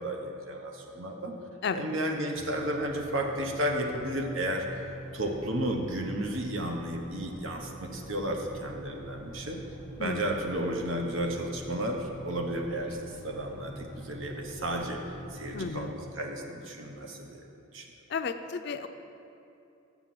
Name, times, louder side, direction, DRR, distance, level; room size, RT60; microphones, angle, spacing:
voice 1, 0.0-1.3 1.7-4.6 5.1-9.6 10.0-15.0 15.3-17.4 17.7-17.8, right 1 dB, 80° right, 2 dB, 1.0 m, -33 dB
sound 1, 2.3-15.9, equal, 5° left, 0.7 m, -45 dB
voice 2, 15.5-16.0 18.1-18.9, left 5 dB, 55° left, 9 dB, 0.4 m, -33 dB
7.0 x 5.9 x 7.6 m, 2.7 s
head